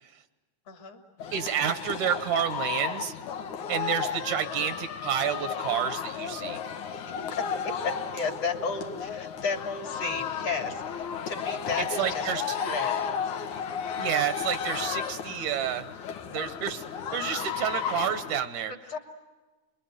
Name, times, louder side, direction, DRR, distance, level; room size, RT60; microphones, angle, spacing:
voice 1, 0.7-1.0 6.4-6.6 7.1-13.2 18.9-19.0, left 4 dB, 55° left, 4 dB, 3.6 m, -34 dB
sound 1, 1.2-18.4, left 7 dB, 90° left, 3.0 m, -34 dB
voice 2, 1.3-3.1 3.7-6.6 12.0-12.6 14.0-15.9 16.3-16.8 17.1-18.7, right 9 dB, 80° right, 10 dB, 2.5 m, -29 dB
29.0 x 23.0 x 9.0 m, 1.2 s
omnidirectional pair, 3.4 m